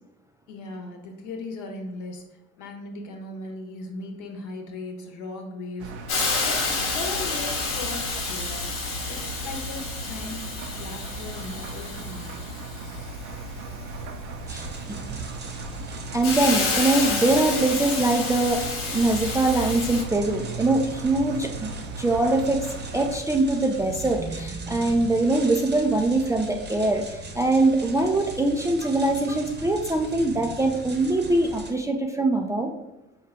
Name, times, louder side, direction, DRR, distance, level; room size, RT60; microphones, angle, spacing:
voice 1, 0.5-2.2 2.6-5.9 6.4-6.6 6.9-12.6, left 2 dB, 60° left, 2 dB, 1.0 m, -38 dB
Engine, 5.8-23.2, right 3 dB, 60° right, 0.6 m, -37 dB
Hiss, 6.1-20.0, left 4 dB, 40° left, 1.0 m, -30 dB
voice 2, 14.5-15.0 16.1-21.7 22.0-22.7 22.9-32.7, right 2 dB, 10° right, 1 dB, 0.4 m, -23 dB
sound 1, 14.5-31.7, right 4 dB, 30° right, 0.9 m, -38 dB
4.5 x 2.4 x 3.4 m, 0.97 s
hypercardioid pair, 60°, 33 cm